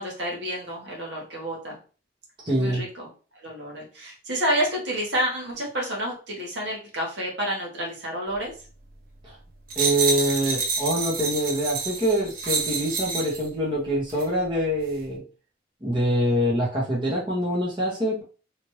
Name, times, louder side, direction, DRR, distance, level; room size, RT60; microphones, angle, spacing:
voice 1, 0.0-1.8 2.6-3.1 3.3-8.5, equal, 70° right, -2 dB, 1.2 m, -29 dB
voice 2, 2.4-2.8 9.2-9.3 9.7-15.2 15.8-18.2, equal, 25° right, -5 dB, 0.9 m, -25 dB
sound 1, 9.7-13.5 14.1-14.3, right 4 dB, 50° right, 0.7 m, -28 dB
3.0 x 2.6 x 3.0 m, 0.36 s
head